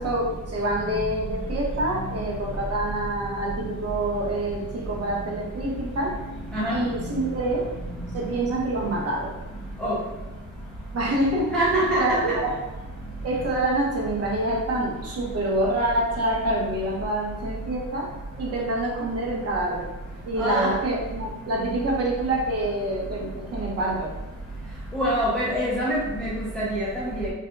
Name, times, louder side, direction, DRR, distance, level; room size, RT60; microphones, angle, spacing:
voice 1, 0.0-6.2 6.7-7.7 8.1-9.3 10.9-11.5 12.0-12.1 12.4-12.5 13.2-18.1 18.4-19.8 20.3-24.1, right 1 dB, 50° right, -3 dB, 0.9 m, -26 dB
voice 2, 11.5-12.4 20.4-20.8 24.9-27.3, right 1 dB, 5° left, -8 dB, 0.5 m, -25 dB
3.8 x 2.6 x 2.2 m, 1.1 s
wide cardioid pair, 140°, 32 cm